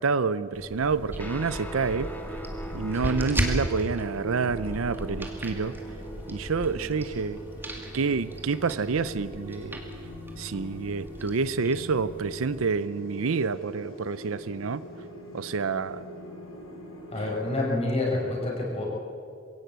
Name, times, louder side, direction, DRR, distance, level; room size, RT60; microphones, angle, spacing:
voice 1, 0.0-2.1 2.7-5.7 6.3-7.4 7.9-9.8 10.4-14.8 15.3-16.0, right 4 dB, 80° right, 16 dB, 0.6 m, -28 dB
sound 1, 0.5-12.7, right 1 dB, 10° right, 2.3 m, -36 dB
sound 2, 0.9-17.7, equal, 80° left, 6.0 m, -44 dB
Guitar, 1.2-10.8, right 1 dB, 10° left, 1.7 m, -43 dB
voice 2, 17.1-18.9, left 2 dB, 30° left, -3 dB, 5.3 m, -28 dB
22.0 x 17.0 x 8.2 m, 2.5 s
head